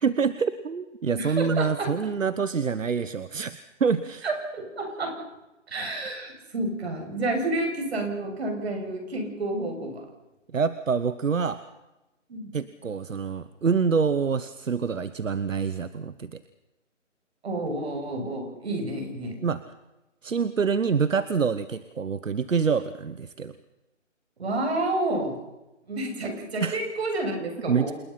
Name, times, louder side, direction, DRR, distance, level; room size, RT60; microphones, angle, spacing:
voice 1, 0.0-3.5 3.8-4.2 10.5-11.6 12.5-16.4 19.4-19.6 20.2-23.5 26.6-26.8 27.7-27.9, right 5 dB, 85° right, 13 dB, 1.3 m, -26 dB
voice 2, 1.1-1.9 4.2-5.1 5.7-10.0 12.3-12.5 17.4-19.3 24.4-25.4 25.9-27.9, right 2 dB, 55° right, 3 dB, 7.9 m, -30 dB
28.0 x 19.0 x 5.8 m, 1.0 s
hypercardioid pair, 160°, 38 cm